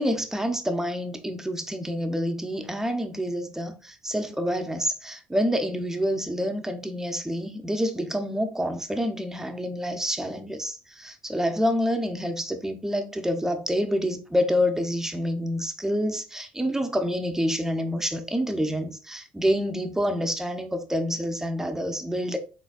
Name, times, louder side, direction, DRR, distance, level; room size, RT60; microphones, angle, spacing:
voice 1, 0.0-22.4, equal, 10° right, 0.8 m, -27 dB
3.9 x 3.8 x 2.5 m
supercardioid pair, 65°, 5 cm